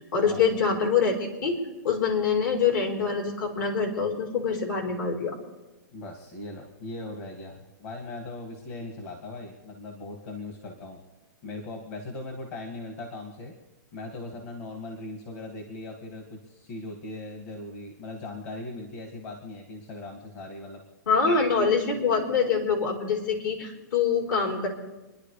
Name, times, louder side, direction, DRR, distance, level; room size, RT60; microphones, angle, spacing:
voice 1, 0.1-1.1 1.4-1.6 1.8-5.4 21.1-24.7, left 5 dB, 65° left, -1 dB, 4.0 m, -25 dB
voice 2, 5.9-11.0 11.4-13.5 13.9-20.8, left 2 dB, 45° left, 1 dB, 2.1 m, -39 dB
28.0 x 11.0 x 3.3 m, 1.1 s
hypercardioid pair, 160°, 11 cm